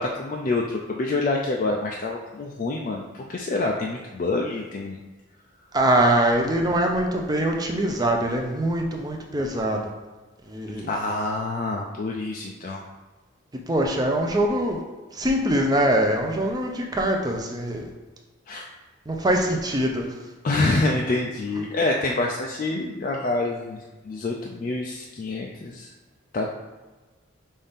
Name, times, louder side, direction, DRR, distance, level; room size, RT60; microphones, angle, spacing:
voice 1, 0.0-5.0 10.9-12.8 18.5-18.6 20.4-23.8 24.1-25.9 26.3-26.5, left 2 dB, 40° left, -1 dB, 0.3 m, -26 dB
voice 2, 5.7-9.8 10.5-10.9 13.7-14.8 15.1-17.9 19.1-20.1, right 1 dB, 20° right, 2 dB, 0.5 m, -23 dB
5.6 x 2.6 x 3.5 m, 1.2 s
head